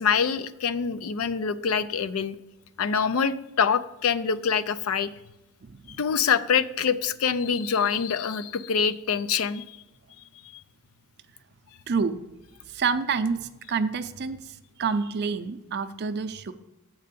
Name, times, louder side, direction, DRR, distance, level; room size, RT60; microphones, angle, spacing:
voice 1, 0.0-2.4 2.8-5.1 5.9-9.8, left 6 dB, 70° left, 14 dB, 0.4 m, -25 dB
voice 2, 5.6-6.0 11.9-12.2 12.7-16.5, right 5 dB, 50° right, 11 dB, 0.5 m, -28 dB
7.5 x 4.5 x 6.8 m, 0.97 s
head